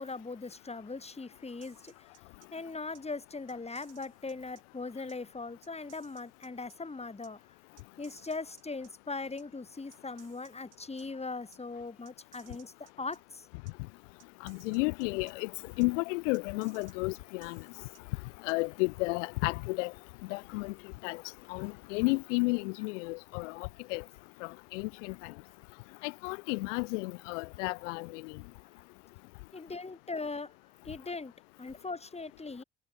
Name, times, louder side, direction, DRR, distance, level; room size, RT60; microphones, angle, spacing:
voice 1, 0.0-2.1 2.5-7.4 8.0-13.5 29.5-30.5 30.8-31.3 31.6-32.6, left 3 dB, 15° left, 1.8 m, -40 dB
sound 1, 1.6-2.5 2.9-3.0 3.5-4.6 5.1-5.2 5.6-6.8 7.2-7.3 7.8-8.9 9.4-9.5 9.9-11.0 11.5-11.6 12.1-13.2 13.7-13.8 14.2-15.3 15.8-15.9 16.3-18.0 18.5-18.6, right 11 dB, 55° right, 5.2 m, -60 dB
voice 2, 14.4-15.5 15.8-17.6 18.4-19.9 20.3-20.7 21.0-21.2 21.5-24.0 24.4-25.3 26.0-28.3, left 27 dB, 75° left, 0.6 m, -32 dB
hypercardioid pair, 55°, 37 cm